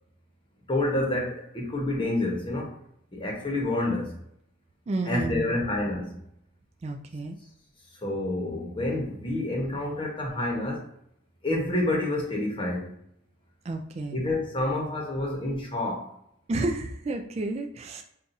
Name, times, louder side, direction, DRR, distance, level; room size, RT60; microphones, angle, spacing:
voice 1, 0.7-2.7 3.1-4.1 5.1-6.2 8.0-10.8 11.4-12.9 14.1-16.1, left 1 dB, 25° left, -1 dB, 0.9 m, -28 dB
voice 2, 4.9-5.6 6.8-7.4 13.6-14.2 16.5-18.0, right 2 dB, 30° right, 4 dB, 0.3 m, -31 dB
5.4 x 2.4 x 2.6 m, 0.72 s
head